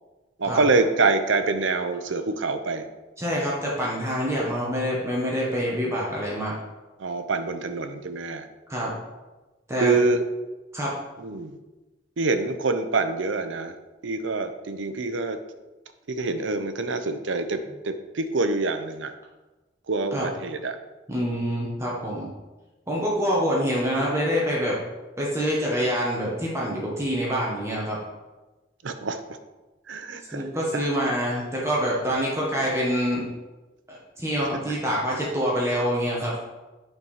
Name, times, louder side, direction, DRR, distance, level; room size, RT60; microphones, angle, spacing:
voice 1, 0.4-2.8 7.0-8.5 9.8-10.3 11.2-11.6 12.2-13.8 14.0-15.4 16.1-19.1 19.9-20.8 28.8-29.2 29.9-30.5 30.7-30.9 32.6-32.7 34.4-34.7, right 3 dB, 80° right, 8 dB, 0.7 m, -26 dB
voice 2, 3.2-6.6 8.7-8.9 9.7-10.0 10.7-10.9 20.1-20.3 21.1-22.3 22.9-24.8 25.2-28.0 30.3-33.3 33.9-36.3, equal, 15° right, -5 dB, 1.5 m, -26 dB
8.1 x 4.7 x 5.6 m, 1.1 s
head